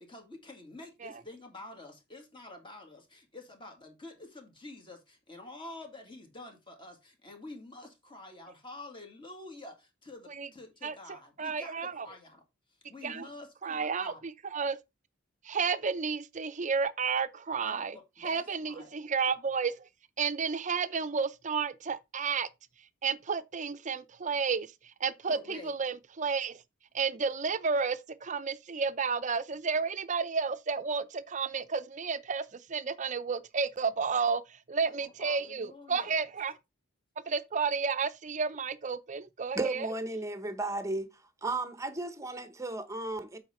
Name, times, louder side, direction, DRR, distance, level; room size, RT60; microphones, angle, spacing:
voice 1, 0.0-12.4 12.9-14.2 17.6-18.9 25.3-25.7 34.8-36.1, left 2 dB, 25° left, 2.1 m, -48 dB
voice 2, 11.4-12.1 13.0-13.2 13.6-14.1 14.5-14.8 15.5-17.9 18.2-19.8 20.2-22.5 23.0-24.7 25.0-26.6 26.9-34.4 34.7-36.5 37.3-39.9, right 5 dB, 35° right, 0.6 m, -31 dB
voice 3, 39.5-41.1 41.4-43.4, right 2 dB, 15° right, 0.9 m, -34 dB
7.9 x 4.9 x 4.3 m
head